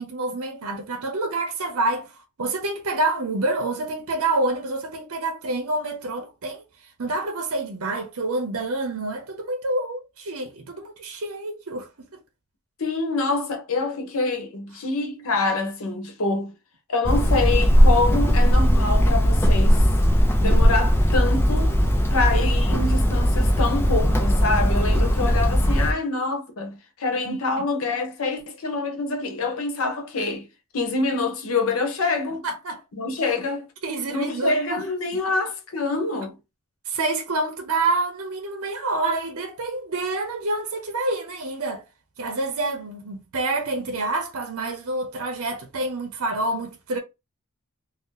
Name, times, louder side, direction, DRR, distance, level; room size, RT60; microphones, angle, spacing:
voice 1, 0.0-2.1 2.4-6.6 7.0-12.1 27.2-27.7 32.4-32.8 33.8-34.9 35.1-35.4 36.9-41.8 42.2-47.0, right 2 dB, 75° right, 0.7 m, -27 dB
voice 2, 12.8-16.5 16.9-19.9 20.4-21.8 22.1-30.5 30.7-32.5 32.9-33.7 34.1-36.4, left 3 dB, 70° left, 0.8 m, -26 dB
Hammer, 17.0-25.9, equal, 10° left, 0.3 m, -18 dB
2.7 x 2.0 x 3.7 m
head